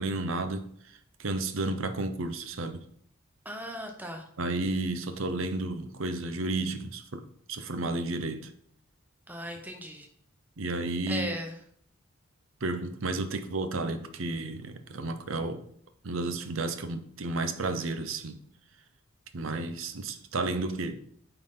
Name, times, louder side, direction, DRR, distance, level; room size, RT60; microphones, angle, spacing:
voice 1, 0.0-2.8 4.4-8.5 10.6-11.3 12.6-15.6 16.0-18.4 19.3-21.0, right 2 dB, 70° right, 0.7 m, -32 dB
voice 2, 3.4-4.3 9.3-10.1 11.1-11.6, equal, 10° right, 0.8 m, -37 dB
9.1 x 4.0 x 3.7 m
head